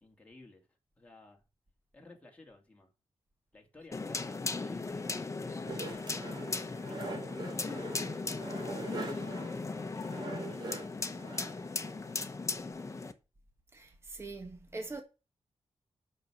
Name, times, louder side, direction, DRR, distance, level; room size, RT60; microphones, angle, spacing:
voice 1, 0.0-1.4 1.9-2.9 3.5-6.3 6.7-8.2 8.8-11.6 12.4-13.0, left 2 dB, 15° left, 2.7 m, -55 dB
sound 1, 3.9-13.1, left 3 dB, 30° left, 1.1 m, -37 dB
sound 2, 5.7-12.1, right 3 dB, 45° right, 3.5 m, -44 dB
voice 2, 13.7-15.0, right 3 dB, 25° right, 1.7 m, -43 dB
9.0 x 6.5 x 7.2 m
wide cardioid pair, 140°, 10 cm